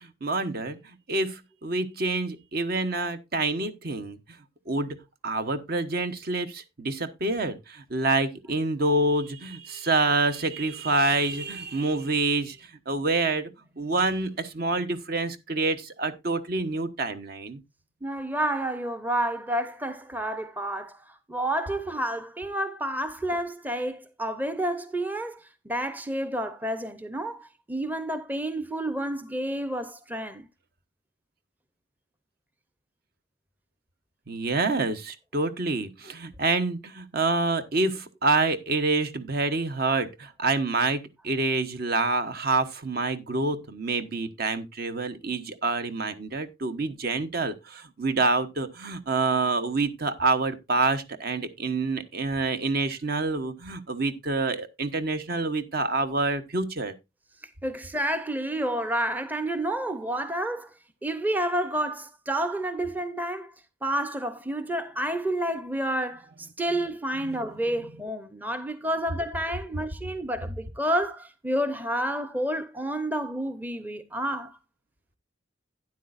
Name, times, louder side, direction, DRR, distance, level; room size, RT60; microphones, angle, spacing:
voice 1, 0.0-0.8 1.1-4.2 4.7-12.6 12.9-13.5 13.8-17.6 34.3-56.9 67.3-67.4, right 3 dB, 55° right, 1.0 m, -27 dB
voice 2, 18.0-30.5 57.6-60.7 61.0-63.5 63.8-74.6, right 1 dB, 10° right, 0.6 m, -30 dB
12.0 x 9.6 x 2.5 m
head